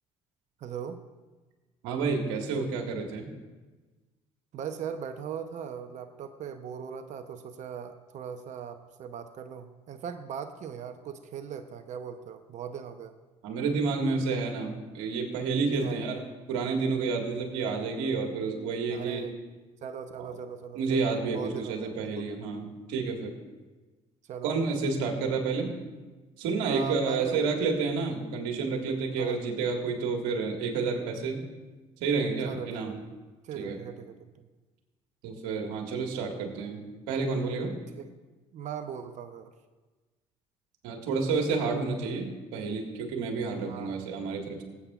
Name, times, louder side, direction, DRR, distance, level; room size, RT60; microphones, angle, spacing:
voice 1, 0.6-1.0 4.5-13.1 15.8-16.0 18.9-19.3 19.8-22.4 24.3-24.5 26.6-27.4 29.2-29.4 32.4-33.1 33.4-34.3 37.9-38.1 38.5-39.5 43.6-44.1, right 7 dB, 55° right, 8 dB, 0.8 m, -39 dB
voice 2, 1.8-3.3 13.4-19.3 20.2-20.4 20.7-23.3 24.4-25.7 26.4-31.4 32.0-33.0 33.5-33.8 35.2-37.7 40.8-44.6, right 4 dB, 75° right, 1 dB, 1.8 m, -30 dB
19.5 x 8.3 x 2.4 m, 1.2 s
hypercardioid pair, 60°, 15 cm